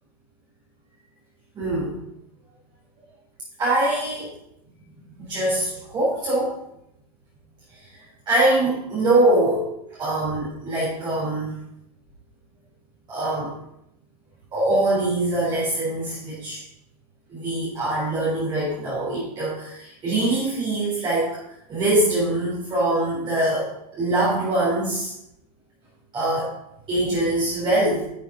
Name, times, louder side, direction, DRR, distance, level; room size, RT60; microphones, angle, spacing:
voice 1, 1.5-2.0 3.6-4.3 5.2-6.6 7.7-11.5 13.1-13.6 14.5-16.6 17.3-21.4 21.7-25.1 26.1-26.5 26.9-28.0, right 1 dB, 20° right, -8 dB, 3.9 m, -23 dB
10.5 x 7.4 x 4.1 m, 0.83 s
supercardioid pair, 150°, 21 cm